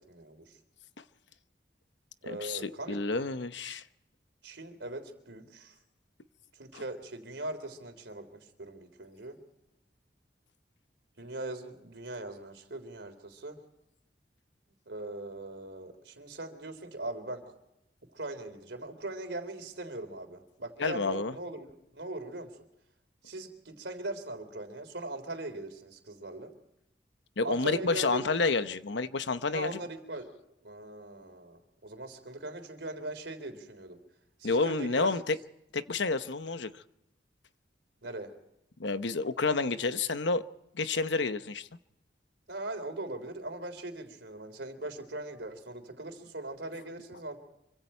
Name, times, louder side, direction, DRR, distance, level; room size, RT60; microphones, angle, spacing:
voice 1, 0.1-0.6 2.2-3.0 4.4-5.8 6.5-9.4 11.2-13.6 14.9-17.4 18.1-21.7 21.9-22.5 23.2-26.5 27.4-28.2 29.5-30.3 30.6-34.0 34.4-35.1 38.0-38.3 42.5-47.4, right 2 dB, 80° right, 3.6 m, -40 dB
voice 2, 2.3-3.8 6.7-6.8 20.8-21.3 27.4-29.8 34.4-35.4 35.7-36.8 38.8-40.4 40.7-41.7, left 3 dB, 90° left, 1.0 m, -29 dB
26.0 x 25.0 x 4.5 m
head